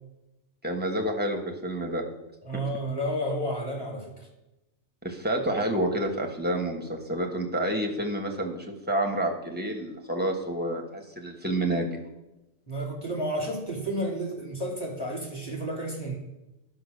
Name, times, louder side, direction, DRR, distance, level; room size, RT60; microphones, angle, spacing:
voice 1, 0.6-2.0 2.5-2.6 5.0-11.9, right 1 dB, 10° right, 2 dB, 1.4 m, -29 dB
voice 2, 2.4-4.3 12.7-16.2, right 1 dB, 20° left, -1 dB, 2.6 m, -31 dB
11.5 x 5.8 x 6.5 m, 0.96 s
omnidirectional pair, 1.4 m